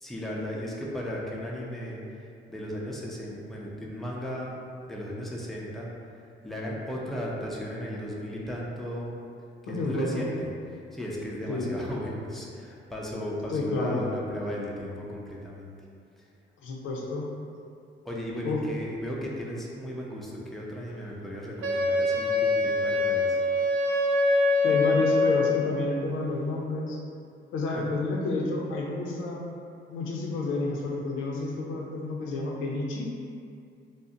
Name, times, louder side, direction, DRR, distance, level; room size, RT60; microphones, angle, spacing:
voice 1, 0.0-2.0 2.5-4.5 4.9-5.9 6.4-9.2 9.7-10.5 10.9-15.7 18.0-23.4 27.7-27.9, equal, ahead, -4 dB, 0.5 m, -35 dB
voice 2, 9.7-10.3 11.5-11.7 13.5-14.0 16.6-17.2 18.4-18.6 24.6-27.0 27.5-29.5 29.9-33.1, left 3 dB, 80° left, -2 dB, 0.5 m, -30 dB
Wind instrument woodwind instrument, 21.6-25.7, left 2 dB, 85° right, 0.5 m, -24 dB
2.6 x 2.1 x 3.6 m, 2.4 s
cardioid pair, 90°, 20 cm